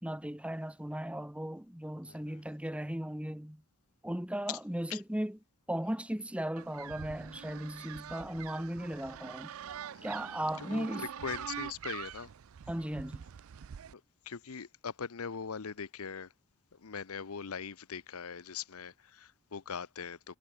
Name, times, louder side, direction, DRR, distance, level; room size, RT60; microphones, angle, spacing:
voice 1, 0.0-3.6 4.0-5.4 5.7-9.5 10.0-11.1 12.7-13.2, right 1 dB, 5° right, 1.1 m, -37 dB
voice 2, 2.0-2.4 4.5-4.6 4.9-5.0 9.9-10.3 10.6-12.3 13.9-16.3 16.7-20.4, left 6 dB, 80° left, 0.8 m, -41 dB
sound 1, 6.6-13.9, right 9 dB, 65° right, 0.4 m, -44 dB
head